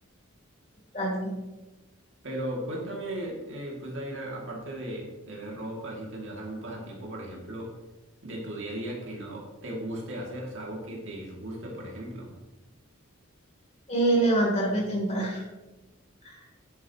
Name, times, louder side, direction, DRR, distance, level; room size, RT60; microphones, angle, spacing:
voice 1, 0.9-1.3 13.9-15.4 16.2-16.4, right 2 dB, 30° left, -3 dB, 3.3 m, -25 dB
voice 2, 2.2-7.7 8.2-12.3, right 1 dB, 60° right, -2 dB, 2.6 m, -36 dB
10.5 x 9.6 x 3.0 m, 1.1 s
head